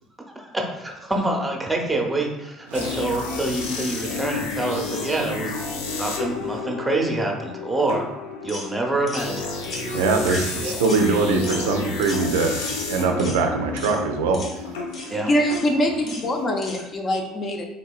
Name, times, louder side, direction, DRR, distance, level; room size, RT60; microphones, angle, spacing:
voice 1, 0.4-5.6 6.0-8.1 8.4-10.0 10.3-10.8 15.0-15.3, right 2 dB, 10° right, 1 dB, 0.7 m, -26 dB
sound 1, 2.7-16.5, left 3 dB, 85° left, 0.5 m, -31 dB
voice 2, 2.7-3.0 9.9-12.5 12.9-14.6, right 4 dB, 85° right, 4 dB, 0.4 m, -22 dB
sound 2, 8.5-8.7 9.1-9.3 9.6-9.9 10.3-10.5 10.8-11.0 11.4-11.7 12.0-12.3 12.6-12.9 13.2-13.4 13.8-14.0 14.3-14.5 14.9-15.1 15.5-15.7 16.1-16.2 16.6-16.8, left 1 dB, 55° left, 1.0 m, -36 dB
voice 3, 15.3-17.6, equal, 40° left, 2 dB, 0.6 m, -23 dB
3.4 x 2.7 x 2.3 m, 0.93 s
hypercardioid pair, 75°, 0 cm